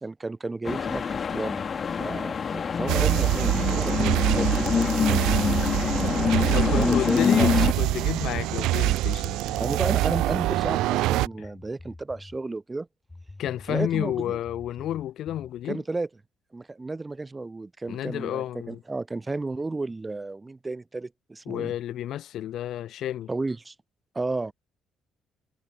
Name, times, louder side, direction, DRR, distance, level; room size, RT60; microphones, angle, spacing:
voice 1, 0.0-5.2 5.9-7.7 9.5-12.9 13.7-14.4 15.7-16.1 16.5-21.7 23.3-23.7 24.1-24.5, right 3 dB, 15° right, 1.5 m, -33 dB
sound 1, 0.6-7.7, left 6 dB, 35° left, 0.9 m, -26 dB
sound 2, 2.9-11.3, right 17 dB, 90° right, 0.7 m, -25 dB
sound 3, 5.4-12.4 13.1-15.6, left 2 dB, 15° left, 1.2 m, -44 dB
voice 2, 6.4-9.4 11.4-11.5 13.4-15.8 17.9-18.8 21.5-23.3, left 12 dB, 65° left, 0.5 m, -30 dB
cardioid pair, 120°, 0 cm